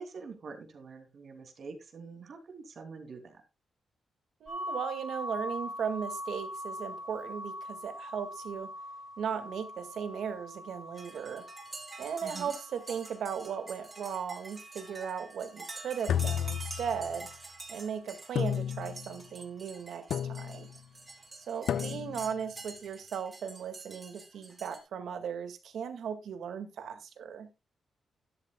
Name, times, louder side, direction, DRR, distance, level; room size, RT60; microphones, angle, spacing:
voice 1, 0.0-3.4 12.2-12.5 21.7-22.0, right 4 dB, 50° right, 2.8 m, -46 dB
voice 2, 4.4-8.7 9.2-11.5 12.0-17.3 17.7-20.7 21.5-27.5, right 7 dB, 75° right, 1.9 m, -37 dB
sound 1, 4.5-16.2, left 1 dB, 5° left, 3.6 m, -43 dB
sound 2, 11.0-24.8, right 3 dB, 25° right, 3.4 m, -47 dB
sound 3, 16.1-17.3 18.3-19.1 20.1-20.7 21.7-22.3, left 9 dB, 75° left, 0.6 m, -32 dB
12.5 x 11.5 x 2.3 m
wide cardioid pair, 150°, 0 cm